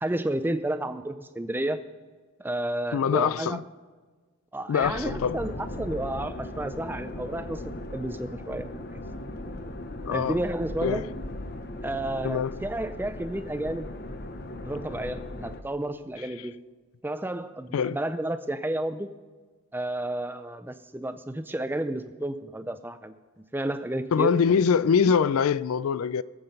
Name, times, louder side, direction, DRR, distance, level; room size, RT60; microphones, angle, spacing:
voice 1, 0.0-1.8 2.4-3.6 4.5-7.6 7.9-8.8 9.5-9.6 10.1-11.0 11.8-13.9 14.6-16.5 17.0-19.1 19.7-23.1 23.5-24.4, right 1 dB, 10° right, 0.4 m, -31 dB
voice 2, 2.9-3.6 4.7-5.4 10.0-10.4 10.8-11.0 12.2-12.5 17.7-18.0 24.1-26.2, left 6 dB, 70° left, 0.4 m, -23 dB
sound 1, 4.8-15.6, left 1 dB, 45° left, 0.8 m, -38 dB
21.0 x 7.8 x 5.4 m
head